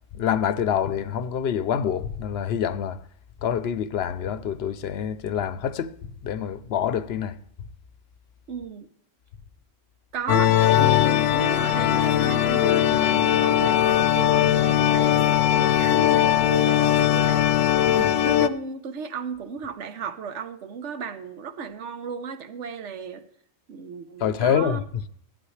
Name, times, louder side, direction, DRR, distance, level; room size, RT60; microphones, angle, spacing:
voice 1, 0.1-3.0 3.4-6.0 6.2-7.4 17.9-18.1 24.2-24.8, left 8 dB, 60° left, 0.9 m, -26 dB
voice 2, 8.5-8.9 10.1-17.6 17.9-23.3 23.7-24.8, right 6 dB, 70° right, 1.2 m, -35 dB
sound 1, 10.3-18.5, left 11 dB, 85° left, 1.0 m, -20 dB
15.5 x 11.5 x 3.2 m
omnidirectional pair, 1.3 m